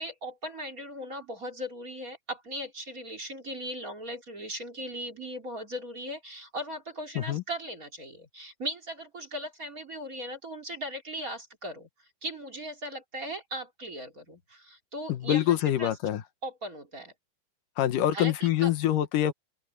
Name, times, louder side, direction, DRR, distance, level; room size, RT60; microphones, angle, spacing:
voice 1, 0.0-11.9 12.2-15.9 16.4-17.1 18.1-18.7, equal, 25° right, 3.6 m, -38 dB
voice 2, 15.1-16.2 17.8-19.3, left 12 dB, 80° left, 2.8 m, -25 dB
open air
omnidirectional pair, 3.8 m